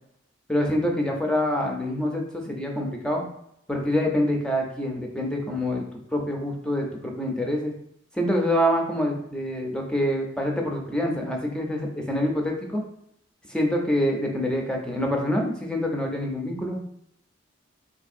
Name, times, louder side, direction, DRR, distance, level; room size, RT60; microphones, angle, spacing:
voice 1, 0.5-3.2 3.7-5.8 6.1-7.7 8.1-12.8 13.5-16.8, equal, 5° left, 1 dB, 0.4 m, -26 dB
3.7 x 2.6 x 2.4 m, 0.75 s
head